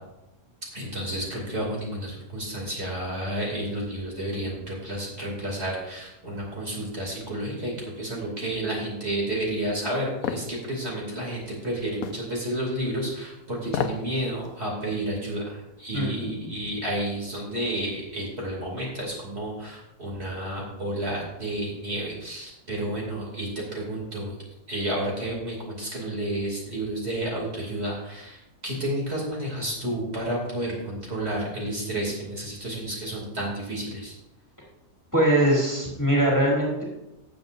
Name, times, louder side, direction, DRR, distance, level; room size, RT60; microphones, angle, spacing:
voice 1, 0.7-24.3 24.7-34.1, right 1 dB, 45° right, -3 dB, 3.0 m, -31 dB
sound 1, 10.2-10.5 12.0-12.2 13.6-14.1 14.5-14.6, left 8 dB, 75° left, 1.2 m, -29 dB
voice 2, 15.9-16.3 35.1-36.8, right 1 dB, 10° left, -4 dB, 2.8 m, -22 dB
17.0 x 7.6 x 2.6 m, 0.93 s
omnidirectional pair, 1.5 m